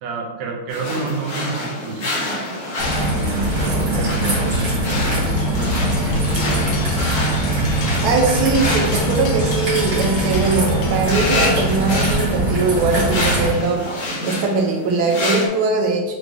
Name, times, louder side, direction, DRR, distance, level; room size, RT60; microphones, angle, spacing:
voice 1, 0.0-2.4 3.1-6.6, right 4 dB, 70° right, -1 dB, 1.3 m, -30 dB
sound 1, 0.7-15.5, left 1 dB, 50° left, 1.6 m, -27 dB
Raindrop / Trickle dribble, 2.8-13.5, right 1 dB, 50° right, 1.7 m, -21 dB
sound 2, 4.5-12.7, left 4 dB, 80° left, 1.5 m, -36 dB
voice 2, 8.0-13.8 14.2-16.1, right 4 dB, 85° right, 1 dB, 1.5 m, -20 dB
6.1 x 3.2 x 2.5 m, 1.1 s
omnidirectional pair, 2.2 m